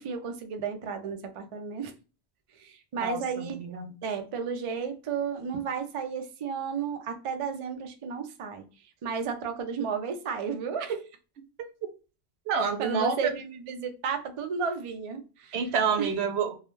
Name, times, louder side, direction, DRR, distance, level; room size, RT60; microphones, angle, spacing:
voice 1, 0.0-1.9 2.5-3.6 4.0-8.6 9.0-11.1 12.8-15.6 16.0-16.1, right 6 dB, 60° right, 6 dB, 0.3 m, -33 dB
voice 2, 3.0-3.9 12.5-13.3 15.5-16.6, right 5 dB, 80° right, 6 dB, 0.8 m, -28 dB
2.3 x 2.1 x 2.9 m, 0.34 s
omnidirectional pair, 1.1 m